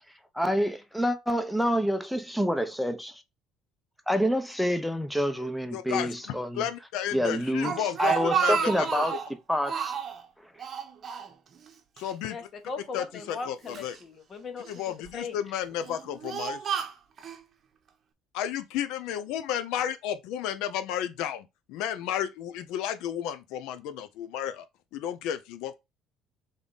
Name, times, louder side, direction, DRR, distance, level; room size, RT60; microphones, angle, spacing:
voice 1, 0.3-3.2 4.1-6.6 7.1-9.1 9.5-9.9, equal, ahead, 0.8 m, -27 dB
voice 2, 5.7-6.1 6.5-9.0 12.0-12.4 12.9-14.0 14.7-16.6 18.3-24.6 24.9-25.7, left 10 dB, 80° left, 0.5 m, -32 dB
Speech, 7.4-9.3 9.6-10.2 10.6-11.7 12.0-12.1 12.9-14.0 14.6-15.1 15.7-17.4, right 7 dB, 45° right, 0.8 m, -31 dB
voice 3, 12.3-14.8 15.1-15.4, left 4 dB, 40° left, 1.2 m, -38 dB
3.6 x 3.4 x 4.0 m
supercardioid pair, 100°, 0 cm